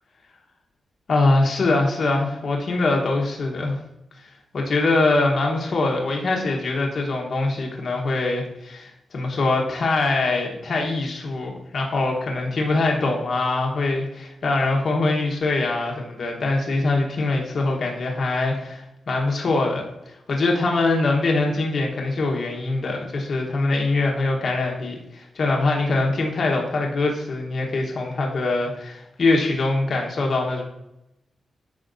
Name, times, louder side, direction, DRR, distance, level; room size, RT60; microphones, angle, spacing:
voice 1, 1.1-3.8 4.2-4.3 4.5-30.6, left 2 dB, 50° left, 0 dB, 1.1 m, -23 dB
8.7 x 5.7 x 2.6 m, 0.87 s
wide cardioid pair, 155°, 0 cm